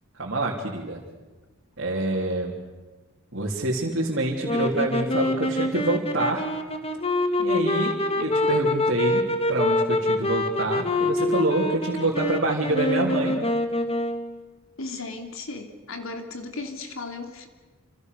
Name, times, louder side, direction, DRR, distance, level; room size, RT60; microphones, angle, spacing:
voice 1, 0.2-1.0 1.8-2.5 3.3-6.5 7.4-9.2 9.5-13.4, right 2 dB, 55° right, -4 dB, 3.5 m, -26 dB
sound 1, 4.4-14.4, left 1 dB, 25° left, 1.8 m, -25 dB
voice 2, 14.8-17.5, left 3 dB, 70° left, 5 dB, 2.9 m, -36 dB
29.0 x 27.5 x 6.9 m, 1.3 s
head